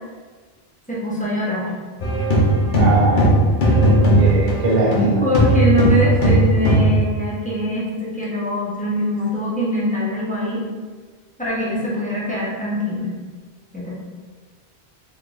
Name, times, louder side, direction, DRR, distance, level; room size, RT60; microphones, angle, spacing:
voice 1, 0.9-1.7 5.2-10.6 11.4-13.1 13.7-13.9, equal, 10° left, -8 dB, 0.7 m, -23 dB
sound 1, 2.0-5.1 5.3-7.0, right 1 dB, 55° left, 0.8 m, -16 dB
voice 2, 2.8-3.3 4.2-5.3, right 2 dB, 50° right, -4 dB, 0.8 m, -20 dB
3.8 x 2.6 x 2.4 m, 1.4 s
omnidirectional pair, 1.1 m